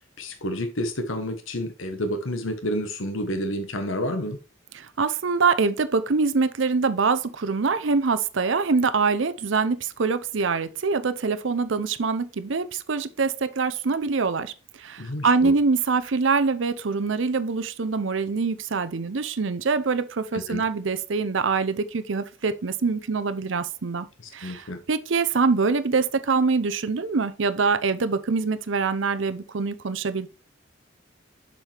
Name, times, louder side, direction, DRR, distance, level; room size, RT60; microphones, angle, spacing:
voice 1, 0.2-4.4 15.0-15.5 20.3-20.6 24.4-24.8, equal, 90° left, 1.2 m, -29 dB
voice 2, 4.7-24.1 24.3-30.3, right 4 dB, 75° right, 0.6 m, -24 dB
7.3 x 5.4 x 3.4 m
head